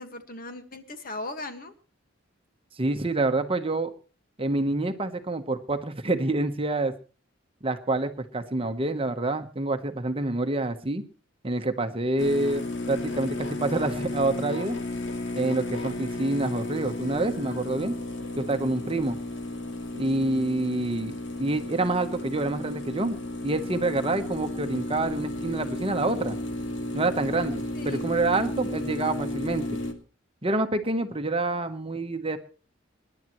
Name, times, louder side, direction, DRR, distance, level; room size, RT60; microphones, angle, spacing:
voice 1, 0.0-1.7 27.7-28.1, left 2 dB, 45° left, 7 dB, 1.6 m, -38 dB
voice 2, 2.8-3.9 4.4-6.9 7.6-11.0 11.4-14.8 15.3-17.9 18.4-19.2 19.9-23.2 23.4-26.4 26.9-29.8 30.4-32.4, right 2 dB, 30° right, 8 dB, 1.0 m, -27 dB
sound 1, 12.2-29.9, left 2 dB, 70° left, 2.2 m, -33 dB
26.0 x 11.0 x 3.1 m, 0.36 s
head